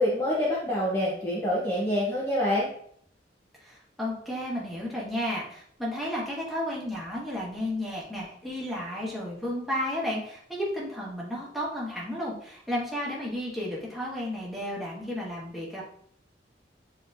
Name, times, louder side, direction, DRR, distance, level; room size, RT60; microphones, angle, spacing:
voice 1, 0.0-2.7, left 1 dB, 15° left, -6 dB, 0.7 m, -26 dB
voice 2, 3.6-15.8, left 1 dB, ahead, -6 dB, 1.4 m, -33 dB
6.8 x 3.0 x 2.6 m, 0.63 s
head